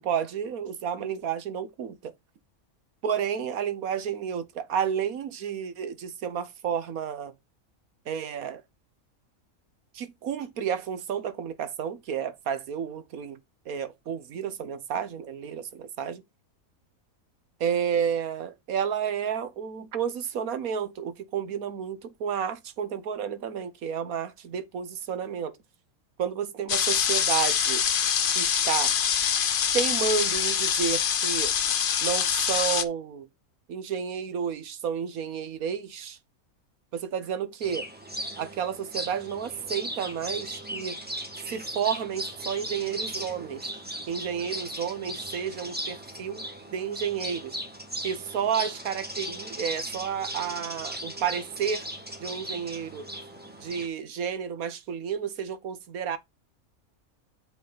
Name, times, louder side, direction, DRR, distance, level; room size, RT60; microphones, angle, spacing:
voice 1, 0.0-2.1 3.0-7.3 8.1-8.6 9.9-13.4 13.7-16.2 17.6-25.6 26.2-27.9 28.3-28.9 29.7-31.5 32.0-33.3 33.7-36.2 36.9-37.9 38.4-41.0 41.5-43.7 44.1-46.5 46.7-47.6 48.0-51.9 52.2-53.1 53.6-56.2, right 8 dB, 75° right, 1.4 m, -31 dB
sound 1, 26.7-32.8, left 8 dB, 50° left, 0.7 m, -25 dB
sound 2, 37.6-53.9, right 1 dB, 5° right, 1.8 m, -37 dB
8.3 x 4.8 x 4.0 m
omnidirectional pair, 1.5 m